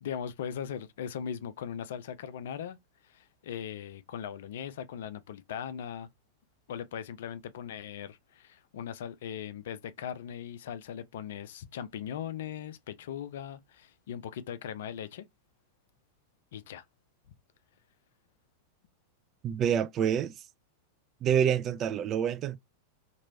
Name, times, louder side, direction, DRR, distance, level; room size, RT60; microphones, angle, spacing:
voice 1, 0.0-2.8 3.0-6.1 6.7-15.2 16.5-16.8, left 9 dB, 55° left, 0.4 m, -39 dB
voice 2, 19.4-20.3 21.2-22.6, right 8 dB, 30° right, 0.3 m, -27 dB
3.0 x 2.9 x 2.6 m
figure-of-eight pair, 90°, 0 cm